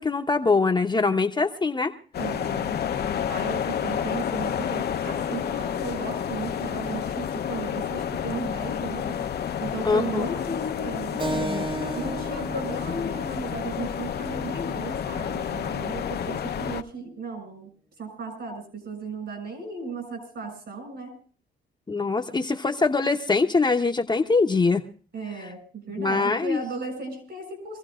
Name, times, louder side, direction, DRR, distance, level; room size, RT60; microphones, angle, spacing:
voice 1, 0.0-1.9 9.8-10.2 21.9-24.8 26.0-26.6, left 4 dB, 20° left, 3 dB, 0.9 m, -23 dB
sound 1, 2.1-16.8, left 8 dB, 55° left, 0.8 m, -30 dB
voice 2, 2.2-2.8 3.3-9.2 9.6-11.7 11.9-17.7 18.0-21.1 25.1-27.8, right 4 dB, 60° right, 5 dB, 6.5 m, -35 dB
Keyboard (musical), 11.2-16.3, right 2 dB, 25° right, 1.2 m, -36 dB
26.0 x 15.5 x 2.5 m, 0.41 s
cardioid pair, 90°, 20 cm